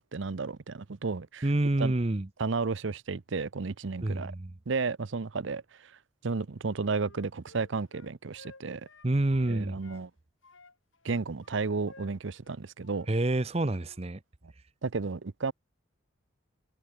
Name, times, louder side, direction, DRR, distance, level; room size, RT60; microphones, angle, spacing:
voice 1, 0.1-1.4 1.8-1.9 2.4-4.3 4.7-5.6 6.2-8.9 9.5-10.1 11.0-13.1 14.8-15.5, right 4 dB, 70° right, 0.7 m, -32 dB
voice 2, 1.4-2.3 4.0-4.5 9.0-9.8 13.1-14.2, right 2 dB, 30° right, 0.7 m, -28 dB
Wind instrument woodwind instrument, 6.6-10.1 10.4-13.5 13.8-14.0, left 3 dB, 80° left, 5.3 m, -56 dB
head